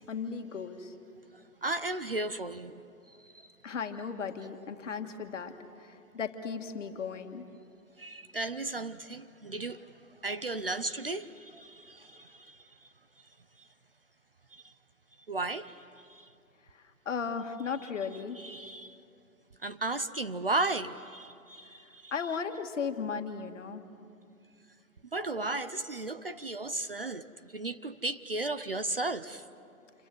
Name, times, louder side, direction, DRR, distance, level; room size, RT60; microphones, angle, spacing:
voice 1, 0.1-0.9 3.6-5.5 5.8-7.5 17.1-18.4 22.1-23.8, left 6 dB, 55° left, 1.9 m, -36 dB
voice 2, 1.6-2.8 8.0-9.8 10.2-12.6 14.5-14.7 15.3-15.8 16.1-16.3 18.4-19.0 19.6-22.1 25.1-27.3 27.5-29.4, right 2 dB, 40° right, 0.5 m, -35 dB
29.0 x 26.5 x 7.7 m
hypercardioid pair, 180°, 45 cm